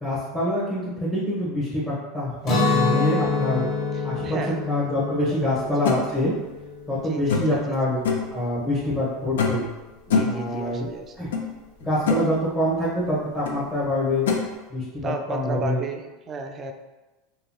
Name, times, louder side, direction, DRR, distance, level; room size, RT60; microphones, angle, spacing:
voice 1, 0.0-3.6 4.0-6.3 6.9-8.0 8.3-9.6 10.2-10.9 11.2-11.3 11.8-14.2 14.7-15.8, left 1 dB, 20° left, -9 dB, 1.0 m, -25 dB
Guitar, 2.4-8.3, left 4 dB, 45° left, 0.9 m, -27 dB
voice 2, 4.2-4.5 5.4-5.7 7.1-7.6 10.1-11.1 15.0-16.7, right 4 dB, 35° right, 5 dB, 0.3 m, -33 dB
sound 1, 5.9-6.0 7.3-7.6 8.0-8.3 9.4-9.7 10.1-10.4 11.3-11.4 11.8-12.3 13.5-13.6 14.3-14.4, left 5 dB, 85° left, 0.4 m, -23 dB
2.8 x 2.8 x 2.2 m, 1.1 s
hypercardioid pair, 100°, 0 cm